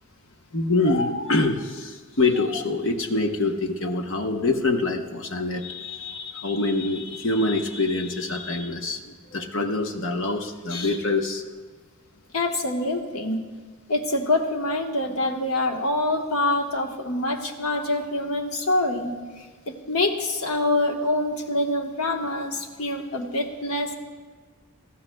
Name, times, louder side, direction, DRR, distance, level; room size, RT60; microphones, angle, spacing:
voice 1, 0.5-11.4, left 2 dB, 60° left, 5 dB, 1.0 m, -25 dB
voice 2, 12.3-13.4 13.9-19.2 19.7-23.9, left 2 dB, 85° left, 2 dB, 1.3 m, -25 dB
19.0 x 14.5 x 2.3 m, 1.5 s
head